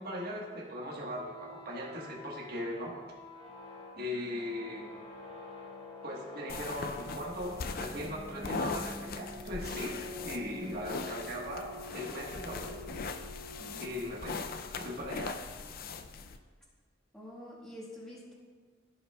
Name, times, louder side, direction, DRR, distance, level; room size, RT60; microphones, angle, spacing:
voice 1, 0.0-3.0 3.9-4.9 6.0-9.9 10.2-12.8 13.8-14.4 14.7-15.4, left 1 dB, 55° right, -3 dB, 1.4 m, -39 dB
sound 1, 1.1-14.8, left 1 dB, 30° left, 1.7 m, -47 dB
sound 2, 6.5-16.4, left 4 dB, 55° left, 0.4 m, -40 dB
voice 2, 13.6-14.1 17.1-18.3, left 1 dB, 5° left, -7 dB, 1.8 m, -47 dB
14.5 x 5.4 x 2.3 m, 1.5 s
head